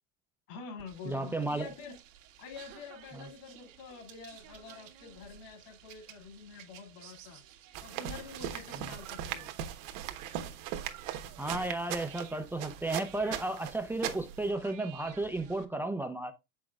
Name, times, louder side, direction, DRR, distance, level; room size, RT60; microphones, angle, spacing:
voice 1, 0.5-2.0 2.4-7.4 7.8-9.5, left 5 dB, 55° left, 2.7 m, -47 dB
sound 1, 0.8-15.6, right 10 dB, 85° right, 1.6 m, -54 dB
voice 2, 1.0-1.7 3.1-3.2 11.4-16.3, right 2 dB, 5° right, 0.5 m, -33 dB
sound 2, 7.7-14.5, right 10 dB, 65° right, 1.3 m, -39 dB
7.6 x 6.2 x 2.3 m
supercardioid pair, 130°, 38 cm